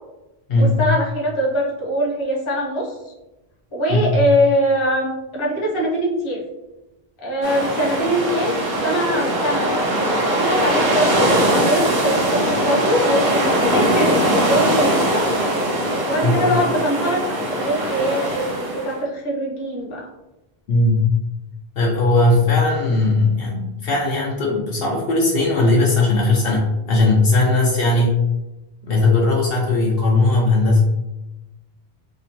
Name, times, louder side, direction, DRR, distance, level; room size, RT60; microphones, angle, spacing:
voice 1, 0.6-3.1 3.7-6.4 7.2-8.5 8.8-15.3 16.1-17.2 17.5-20.1, equal, 30° left, -4 dB, 0.7 m, -22 dB
sound 1, 7.4-18.9, right 1 dB, 65° right, 1.0 m, -20 dB
voice 2, 20.7-21.1 21.8-28.2 28.8-30.8, left 2 dB, 65° left, -2 dB, 0.7 m, -18 dB
2.9 x 2.1 x 2.7 m, 1.0 s
omnidirectional pair, 1.1 m